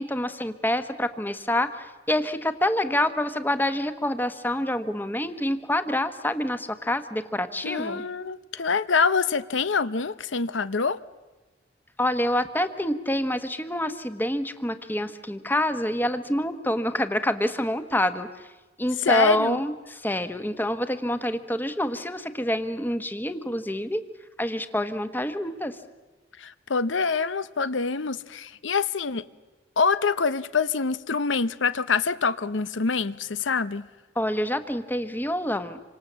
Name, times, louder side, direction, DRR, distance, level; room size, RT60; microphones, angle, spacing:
voice 1, 0.0-8.0 8.5-8.6 12.0-18.5 18.8-24.0 24.4-25.8 34.1-35.8, left 1 dB, 10° left, 1.2 m, -27 dB
voice 2, 7.6-11.0 19.0-19.6 26.4-29.2 29.8-33.9, left 5 dB, 80° left, 0.9 m, -25 dB
27.5 x 25.5 x 7.5 m
head